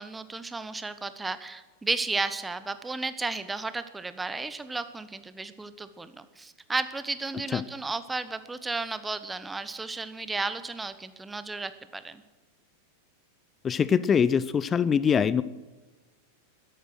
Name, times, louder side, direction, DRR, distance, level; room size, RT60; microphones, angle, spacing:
voice 1, 0.0-12.2, right 3 dB, 10° right, 13 dB, 0.9 m, -33 dB
voice 2, 13.6-15.4, left 7 dB, 20° left, 18 dB, 0.4 m, -23 dB
13.0 x 11.0 x 6.1 m, 1.2 s
figure-of-eight pair, 90°, 0 cm